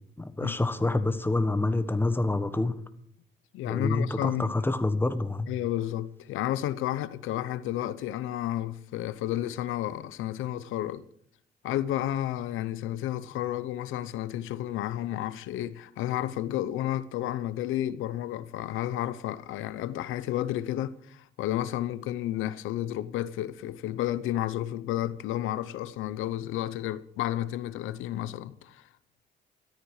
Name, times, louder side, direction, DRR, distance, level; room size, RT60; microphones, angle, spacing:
voice 1, 0.2-2.8 3.6-5.5, left 2 dB, 10° left, 1.3 m, -27 dB
voice 2, 3.5-4.5 5.5-11.0 11.6-28.8, left 13 dB, 90° left, 0.8 m, -31 dB
13.5 x 13.5 x 4.8 m
cardioid pair, 90°, 20 cm